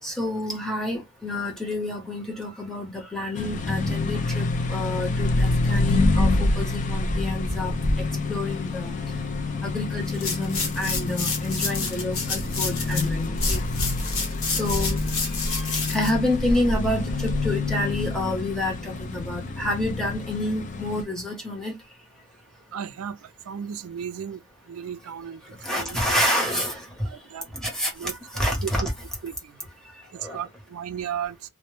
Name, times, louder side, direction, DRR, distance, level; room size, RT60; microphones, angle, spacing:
voice 1, 0.0-8.9 9.6-13.6 14.5-15.0 15.5-21.7 25.6-27.1 27.6-28.8 30.2-30.4, left 1 dB, 5° left, 0.8 m, -29 dB
sound 1, 3.3-21.0, left 2 dB, 35° left, 0.4 m, -27 dB
sound 2, 10.1-17.2, left 4 dB, 75° left, 0.9 m, -30 dB
voice 2, 22.7-23.2 23.5-24.4 24.7-25.4 25.7-26.0 27.1-27.5 27.9-28.9 29.2-29.5 30.3-31.4, right 8 dB, 90° right, 0.4 m, -34 dB
2.1 x 2.1 x 3.1 m
head